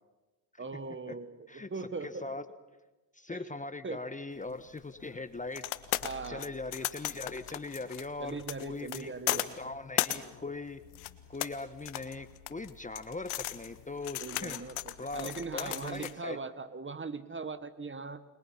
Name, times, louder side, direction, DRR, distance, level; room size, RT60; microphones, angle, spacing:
voice 1, 0.6-2.3 3.3-3.5 3.8-4.0 6.0-6.5 8.2-9.5 14.2-18.2, right 4 dB, 25° right, 13 dB, 1.5 m, -40 dB
voice 2, 2.0-2.4 3.1-5.7 6.3-10.8 11.3-14.6 15.0-16.4, left 3 dB, 15° left, 11 dB, 1.2 m, -40 dB
sound 1, 4.4-16.1, left 16 dB, 75° left, 1.5 m, -37 dB
29.5 x 22.0 x 5.8 m, 1.1 s
supercardioid pair, 75°, 49 cm